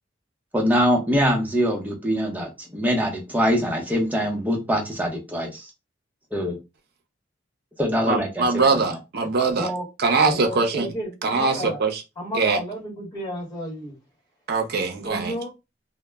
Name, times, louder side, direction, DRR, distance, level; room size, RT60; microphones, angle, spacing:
voice 1, 0.5-5.7 6.3-6.6 7.8-9.0, equal, 10° right, 0.6 m, -23 dB
voice 2, 8.1-9.7 10.0-10.9 11.2-12.0 12.3-12.6 14.5-15.3, right 4 dB, 60° right, 0.6 m, -22 dB
voice 3, 10.2-11.8 12.2-14.0 15.0-15.5, equal, 20° left, 1.0 m, -32 dB
2.1 x 2.0 x 3.3 m
head